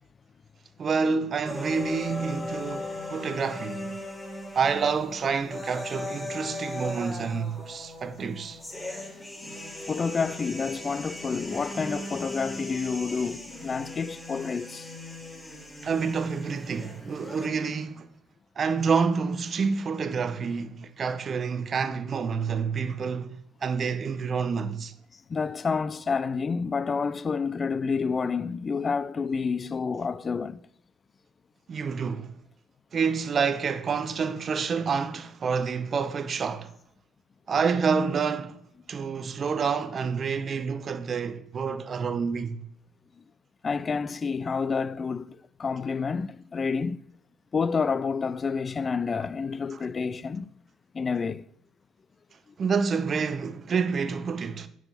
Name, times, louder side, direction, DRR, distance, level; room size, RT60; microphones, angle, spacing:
voice 1, 0.8-3.9 4.5-8.6 15.8-18.1 18.6-24.9 31.7-32.3 32.9-36.7 37.5-38.6 38.9-42.6 49.7-49.8 52.6-54.7, right 5 dB, 40° right, 0.7 m, -28 dB
sound 1, 1.5-17.5, left 2 dB, 10° left, 4.0 m, -38 dB
voice 2, 9.9-14.9 25.3-30.6 43.6-47.0 47.5-50.5 50.9-51.4, left 5 dB, 35° left, 0.4 m, -29 dB
9.7 x 4.8 x 5.8 m
hypercardioid pair, 55°, 0 cm